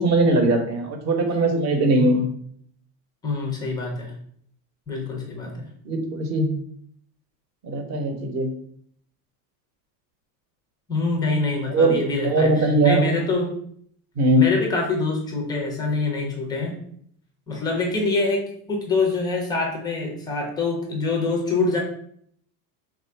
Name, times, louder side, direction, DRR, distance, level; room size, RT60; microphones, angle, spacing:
voice 1, 0.0-2.2 5.5-6.5 7.6-8.5 11.7-12.0 12.2-13.0 14.2-14.5, right 2 dB, 35° right, 4 dB, 0.7 m, -20 dB
voice 2, 2.0-2.3 3.2-4.1 4.9-5.7 10.9-13.5 14.4-16.8 17.5-21.8, left 3 dB, 10° left, 0 dB, 0.3 m, -25 dB
3.5 x 2.5 x 4.3 m, 0.65 s
supercardioid pair, 155°, 47 cm